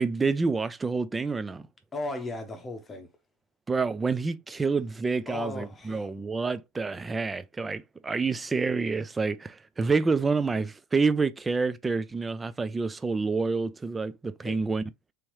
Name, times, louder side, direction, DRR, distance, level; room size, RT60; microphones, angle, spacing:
voice 1, 0.0-1.6 3.7-14.8, right 4 dB, 15° right, 0.4 m, -28 dB
voice 2, 1.9-3.1 5.3-6.1 14.4-14.6, left 2 dB, 20° left, 0.8 m, -36 dB
3.5 x 3.0 x 3.0 m
hypercardioid pair, 90°, 0 cm